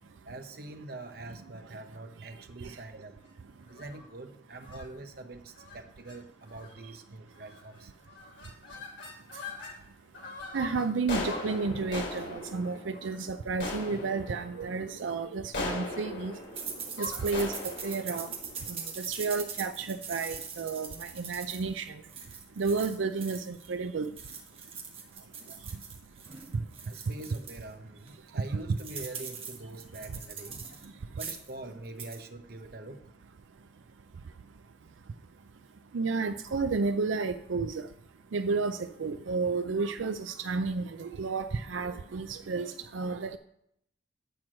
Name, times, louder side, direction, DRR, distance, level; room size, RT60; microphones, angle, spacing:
voice 1, 0.2-3.2 3.7-7.9 26.8-30.6 31.2-33.0, right 2 dB, 50° right, 6 dB, 0.9 m, -44 dB
sound 1, 3.7-4.1 4.6-4.9 5.6-5.8 6.1-6.2 6.5-6.9 7.4-7.8 8.1-9.8 10.1-19.3, left 2 dB, 75° left, 2.7 m, -40 dB
voice 2, 10.5-16.3 17.0-17.5 17.8-18.3 18.7-21.9 22.6-24.1 35.9-37.8 38.3-43.4, right 4 dB, 85° right, 9 dB, 0.5 m, -31 dB
sound 2, 16.6-23.7 24.0-27.6 28.1-28.2 28.4-30.9 31.1-31.5 31.9-32.2, right 6 dB, 30° right, 1.5 m, -42 dB
10.0 x 4.6 x 7.4 m, 0.74 s
head